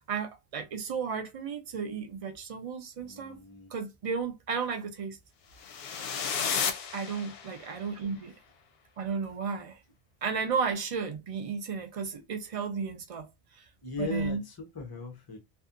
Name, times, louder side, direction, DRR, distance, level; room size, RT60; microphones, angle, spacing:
voice 1, 0.1-3.4 3.7-5.2 6.9-8.3 9.0-9.8 10.2-13.3 13.5-13.6 14.0-14.4, right 5 dB, 55° right, 0.4 m, -33 dB
voice 2, 3.0-3.7 13.8-15.4, left 3 dB, 40° left, 0.3 m, -38 dB
sound 1, 5.6-7.8, left 7 dB, 65° left, 0.7 m, -33 dB
2.6 x 2.3 x 2.4 m
omnidirectional pair, 1.2 m